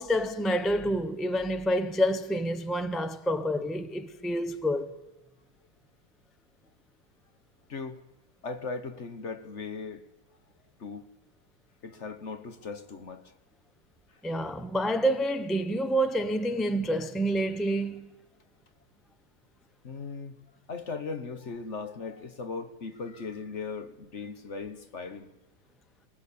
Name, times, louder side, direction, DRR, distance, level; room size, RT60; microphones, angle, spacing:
voice 1, 0.0-4.9 14.2-18.0, equal, ahead, 0.4 m, -28 dB
voice 2, 8.4-10.1 10.8-11.1 11.8-13.3 19.8-20.3 20.7-25.3, left 4 dB, 45° left, 1.3 m, -38 dB
20.5 x 19.0 x 8.5 m
omnidirectional pair, 2.0 m